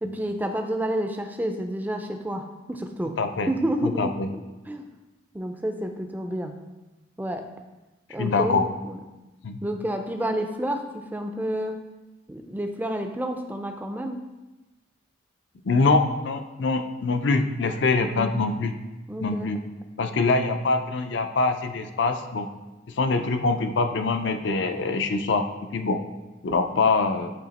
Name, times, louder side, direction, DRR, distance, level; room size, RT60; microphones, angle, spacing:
voice 1, 0.0-3.2 3.5-4.1 4.7-4.9 5.3-6.6 7.2-7.5 8.1-9.0 9.6-11.8 12.3-14.3 18.0-18.3 19.1-19.5, right 1 dB, 10° right, 5 dB, 0.4 m, -29 dB
voice 2, 3.2-3.5 3.8-4.3 8.2-8.7 9.4-9.6 15.6-18.7 19.2-19.6 20.0-22.5 23.0-26.0 26.4-27.3, left 3 dB, 60° left, 8 dB, 0.4 m, -24 dB
8.4 x 2.8 x 4.1 m, 1.1 s
head